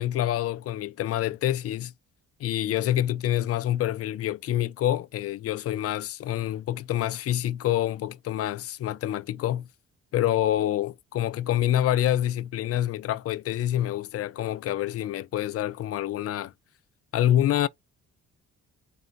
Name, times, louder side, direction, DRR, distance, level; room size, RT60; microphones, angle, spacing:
voice 1, 0.0-1.9 2.4-9.7 10.1-16.5 17.1-17.7, left 12 dB, 50° left, 0.4 m, -27 dB
3.7 x 2.2 x 3.8 m
cardioid pair, 90°, 30 cm